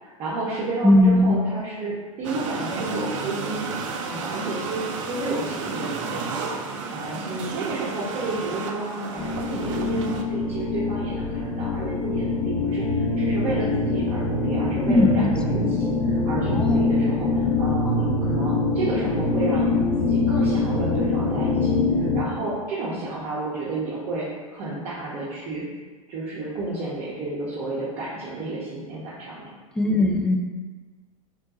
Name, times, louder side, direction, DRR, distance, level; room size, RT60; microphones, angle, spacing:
voice 1, 0.0-3.7 4.0-6.6 6.9-19.6 20.0-25.6 26.1-29.5 29.9-30.0, right 2 dB, 35° right, -8 dB, 0.9 m, -31 dB
voice 2, 0.8-1.4 14.9-15.4 16.5-16.8 29.8-30.4, left 1 dB, 5° left, 2 dB, 0.3 m, -18 dB
sound 1, 2.2-10.2, right 4 dB, 55° right, 0.5 m, -32 dB
sound 2, 9.2-22.2, left 3 dB, 20° left, 1.0 m, -24 dB
3.9 x 2.2 x 4.0 m, 1.3 s
figure-of-eight pair, 90°, 19 cm